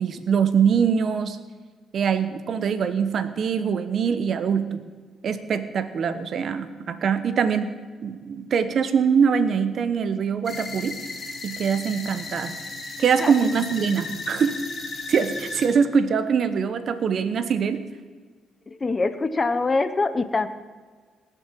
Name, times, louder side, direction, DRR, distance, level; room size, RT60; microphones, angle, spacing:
voice 1, 0.0-1.4 1.9-4.8 5.2-7.7 8.0-11.0 11.4-12.5 13.0-14.6 15.1-17.9, right 6 dB, 60° right, 11 dB, 1.1 m, -23 dB
sound 1, 10.4-15.7, left 3 dB, 45° left, 3.7 m, -35 dB
voice 2, 18.7-20.5, left 3 dB, 30° left, 12 dB, 1.0 m, -24 dB
18.5 x 7.1 x 7.5 m, 1.5 s
cardioid pair, 90°, 0 cm